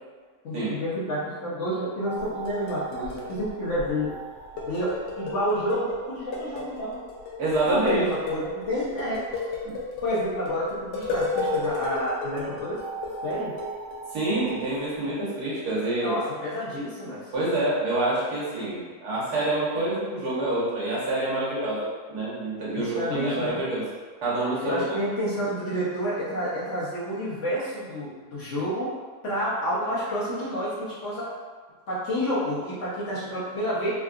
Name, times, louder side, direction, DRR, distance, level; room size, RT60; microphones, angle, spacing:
voice 1, 0.4-4.1 4.5-4.9 5.2-7.0 7.7-9.3 10.0-12.8 13.2-13.5 16.0-17.2 22.7-23.6 24.6-28.9 29.2-31.3 31.9-33.9, equal, 55° left, -9 dB, 1.0 m, -29 dB
sound 1, 2.0-8.6 11.3-14.6, right 5 dB, 45° right, 0.7 m, -40 dB
sound 2, 2.2-4.1 4.4-6.0 6.3-14.0 14.5-14.6, left 4 dB, 85° left, 1.2 m, -33 dB
voice 2, 7.4-8.0 9.6-9.8 14.1-16.2 17.3-23.8 24.2-24.8, right 2 dB, 75° right, -8 dB, 1.5 m, -27 dB
3.6 x 2.3 x 2.4 m, 1.5 s
omnidirectional pair, 1.7 m